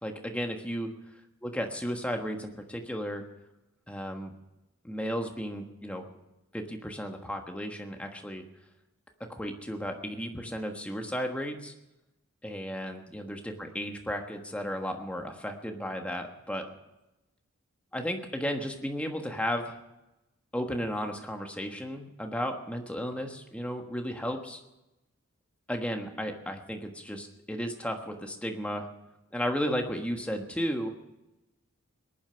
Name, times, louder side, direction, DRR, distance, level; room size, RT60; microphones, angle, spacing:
voice 1, 0.0-0.9 1.4-3.2 3.9-4.3 4.8-6.1 6.5-8.4 9.3-11.7 12.4-16.7 17.9-19.7 20.5-24.6 25.7-28.9 29.3-30.9, equal, 5° left, 3 dB, 1.4 m, -34 dB
19.5 x 11.0 x 5.7 m, 0.97 s
head